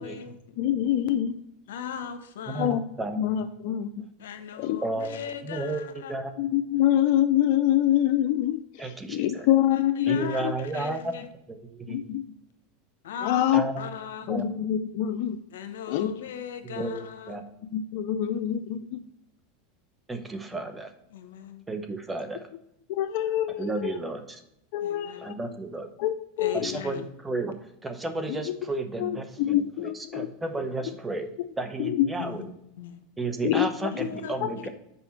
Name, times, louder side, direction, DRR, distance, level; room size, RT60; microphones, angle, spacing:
voice 1, 0.0-0.4 1.7-2.7 4.2-6.2 9.4-11.3 13.0-14.3 15.5-17.4 21.1-21.6 24.8-25.3 26.4-27.0 32.2-32.4 32.8-33.0 33.9-34.7, left 8 dB, 85° left, 0.8 m, -39 dB
voice 2, 0.6-1.4 2.5-2.8 3.1-4.1 4.6-4.8 6.4-10.5 11.9-12.2 13.2-13.7 14.3-15.4 15.9-16.1 17.7-19.0 22.9-24.0 24.7-25.3 26.0-26.7 28.3-28.4 29.0-29.1 29.4-30.3 31.8-32.0 33.4-33.9, left 12 dB, 65° left, 0.4 m, -25 dB
voice 3, 2.5-3.2 4.8-6.4 8.8-9.5 10.1-11.1 11.5-12.0 13.5-13.8 14.3-14.5 16.6-17.7 20.1-20.9 21.7-22.5 23.6-24.4 25.2-25.9 26.5-27.5 27.8-31.3 31.6-32.5 33.2-34.7, right 2 dB, 15° right, 0.8 m, -33 dB
6.2 x 5.2 x 4.4 m
hypercardioid pair, 110°, 0 cm